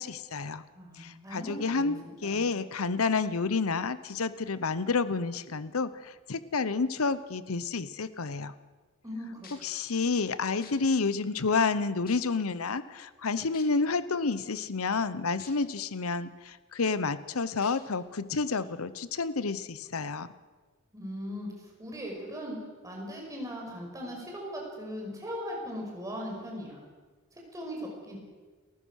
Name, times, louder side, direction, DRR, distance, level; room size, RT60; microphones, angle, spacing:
voice 1, 0.0-0.6 1.0-1.9 2.2-8.5 9.6-20.3, left 4 dB, 85° left, 15 dB, 0.9 m, -30 dB
voice 2, 0.8-2.5 9.0-9.5 9.8-9.9 20.9-22.6 22.8-26.8 27.3-28.2, equal, 15° right, -1 dB, 5.7 m, -39 dB
sound 1, 9.1-9.2 9.4-9.7 10.6-10.7 11.5-11.6 12.1-12.4 13.5-13.6 15.4-15.5 16.0-16.1 17.6-17.7 18.5-18.6, left 7 dB, 45° left, 3.1 m, -49 dB
29.5 x 15.0 x 6.4 m, 1.4 s
head